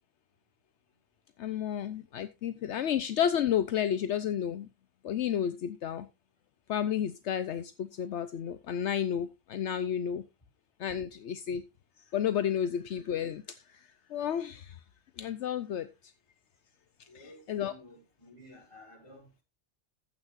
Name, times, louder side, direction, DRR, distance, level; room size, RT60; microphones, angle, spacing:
voice 1, 1.4-4.7 5.0-6.1 6.7-10.2 10.8-11.6 12.1-13.4 14.1-14.7 15.2-15.9 17.1-17.7, left 9 dB, 75° left, 1.0 m, -31 dB
voice 2, 17.1-19.4, left 1 dB, 25° left, 5.1 m, -54 dB
14.5 x 9.7 x 2.5 m
omnidirectional pair, 1.2 m